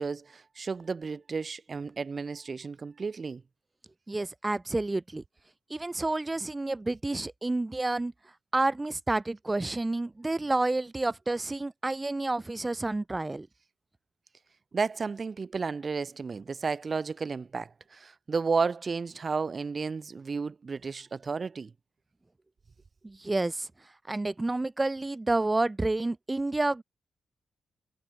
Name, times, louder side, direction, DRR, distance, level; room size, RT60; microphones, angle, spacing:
voice 1, 0.0-3.4 14.7-21.7, right 4 dB, 35° right, 4.3 m, -32 dB
voice 2, 4.1-5.2 5.7-8.1 8.5-13.5 23.0-23.7 24.1-26.8, right 2 dB, 15° right, 1.2 m, -29 dB
wide cardioid pair, 160°, 0 cm